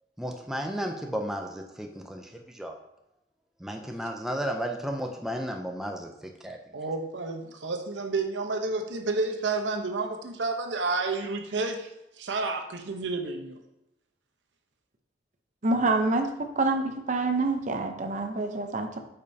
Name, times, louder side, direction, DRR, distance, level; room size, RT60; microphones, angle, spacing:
voice 1, 0.2-2.8 3.6-6.6, equal, ahead, 2 dB, 0.5 m, -33 dB
voice 2, 6.7-11.9 12.2-13.6, right 3 dB, 75° right, 5 dB, 0.8 m, -30 dB
voice 3, 15.6-19.0, right 2 dB, 40° right, 5 dB, 0.7 m, -27 dB
8.6 x 5.2 x 2.7 m, 0.89 s
head